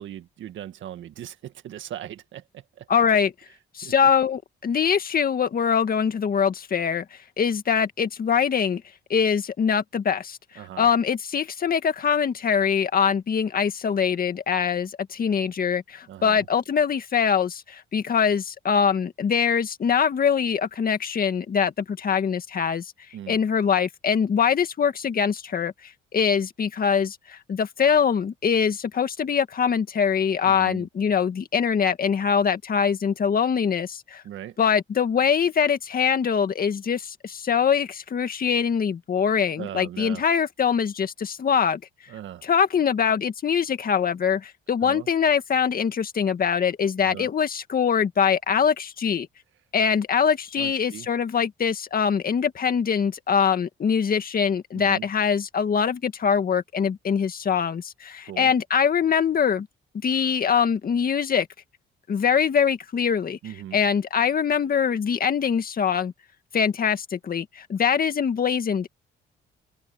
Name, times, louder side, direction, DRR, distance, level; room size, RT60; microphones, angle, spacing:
voice 1, 0.0-2.9 3.8-3.9 10.6-10.9 16.1-16.5 23.1-23.4 30.4-30.9 34.2-34.6 39.6-40.2 42.1-42.5 44.8-45.1 47.0-47.3 50.6-51.1 54.7-55.1 58.2-58.5 63.4-63.8, right 11 dB, 75° right, 1.8 m, -39 dB
voice 2, 2.9-3.3 3.7-7.0 7.4-8.8 9.1-10.4 10.8-22.9 23.3-25.7 26.1-34.2 34.6-41.8 42.4-49.3 49.7-59.7 60.0-61.5 62.1-63.4 63.7-66.1 66.5-68.9, left 7 dB, 45° left, 1.9 m, -23 dB
open air
cardioid pair, 90°, 20 cm